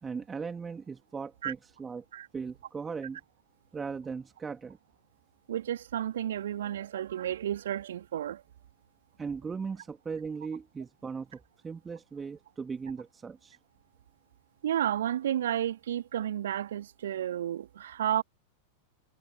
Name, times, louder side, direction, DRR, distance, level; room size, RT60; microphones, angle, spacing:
voice 1, 0.0-2.0 2.3-3.2 3.7-4.8 9.2-13.6, right 5 dB, 15° right, 2.7 m, -38 dB
voice 2, 5.5-8.4 14.6-18.2, right 11 dB, 60° right, 3.0 m, -31 dB
figure-of-eight pair, 90°, 0 cm